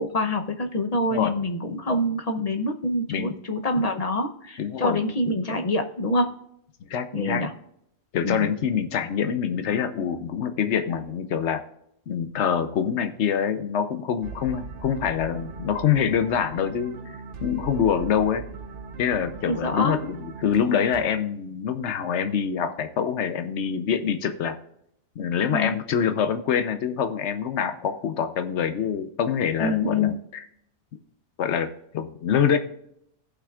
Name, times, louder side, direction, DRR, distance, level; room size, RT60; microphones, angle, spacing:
voice 1, 0.0-6.3 7.1-7.5 8.2-8.5 19.5-20.0 25.5-25.8 29.6-30.2, left 1 dB, 35° left, 6 dB, 0.8 m, -26 dB
voice 2, 4.6-5.0 6.9-7.4 8.1-11.6 12.1-17.0 17.4-18.4 19.0-20.2 20.4-24.6 25.2-30.4 31.4-32.6, left 7 dB, 75° left, 9 dB, 1.1 m, -25 dB
sound 1, 14.2-21.0, right 4 dB, 75° right, 1.1 m, -39 dB
16.5 x 5.8 x 2.4 m, 0.73 s
omnidirectional pair, 1.2 m